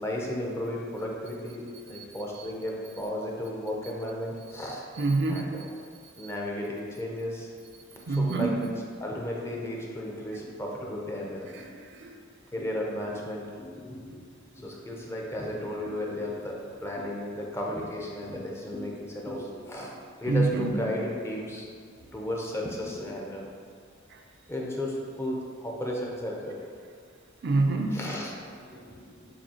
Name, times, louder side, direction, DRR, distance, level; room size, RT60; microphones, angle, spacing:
voice 1, 0.0-1.6 1.9-4.9 5.3-5.7 6.2-7.5 8.1-8.7 9.0-11.5 12.5-14.3 14.5-19.9 20.2-21.7 22.1-23.5 24.5-26.6 27.9-29.3, left 1 dB, 15° left, -2 dB, 0.5 m, -34 dB
voice 2, 5.0-5.4 8.1-8.5 11.8-12.2 20.3-20.7 27.4-28.0, right 3 dB, 60° right, 3 dB, 0.4 m, -26 dB
7.0 x 2.7 x 2.8 m, 2.1 s
head